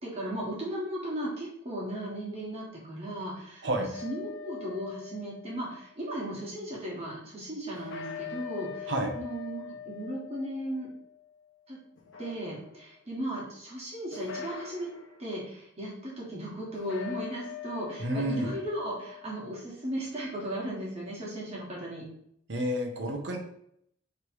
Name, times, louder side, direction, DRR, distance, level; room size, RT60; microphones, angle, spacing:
voice 1, 0.0-10.9 11.7-11.8 12.2-14.9 15.2-22.0, right 1 dB, 35° right, -5 dB, 1.6 m, -36 dB
sound 1, 3.9-6.0 7.7-11.5 12.0-13.0 14.1-15.2 16.7-19.4, left 7 dB, 90° left, 0.7 m, -43 dB
voice 2, 18.0-18.5 22.5-23.4, right 1 dB, 70° right, 3 dB, 0.8 m, -30 dB
3.3 x 3.1 x 4.5 m, 0.71 s
head